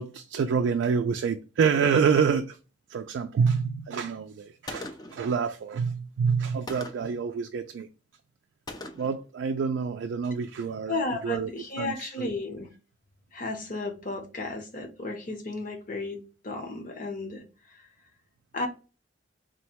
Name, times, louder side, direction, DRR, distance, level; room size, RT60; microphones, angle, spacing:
voice 1, 0.0-2.6 2.9-7.9 9.0-11.5 11.8-12.3, right 6 dB, 75° right, 0.3 m, -27 dB
Gunshot gunfire, 4.7-5.3 6.7-7.2 8.7-9.2, left 2 dB, 20° left, 0.4 m, -40 dB
voice 2, 10.9-12.7 13.3-16.2 16.4-17.4 18.5-18.7, left 2 dB, 45° left, 0.8 m, -33 dB
3.7 x 2.1 x 4.4 m
head